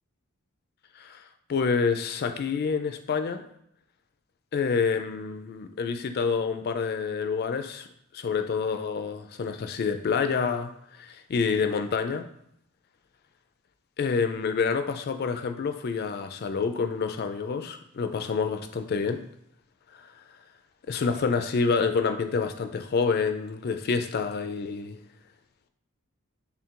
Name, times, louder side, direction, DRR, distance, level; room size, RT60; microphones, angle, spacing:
voice 1, 1.5-3.4 4.5-7.9 8.1-12.3 14.0-19.2 20.0-20.1 20.9-25.0, left 5 dB, 45° left, 8 dB, 0.3 m, -28 dB
3.5 x 2.5 x 4.4 m, 0.73 s
head